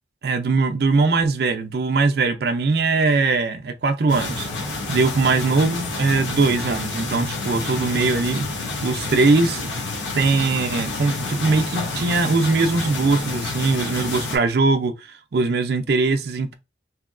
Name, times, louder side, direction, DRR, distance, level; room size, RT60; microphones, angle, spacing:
voice 1, 0.2-4.5 4.9-8.5 8.8-9.6 10.1-16.5, right 3 dB, 55° right, 0.4 m, -21 dB
sound 1, 4.1-14.4, left 3 dB, 85° left, 0.9 m, -29 dB
2.9 x 2.7 x 2.5 m
head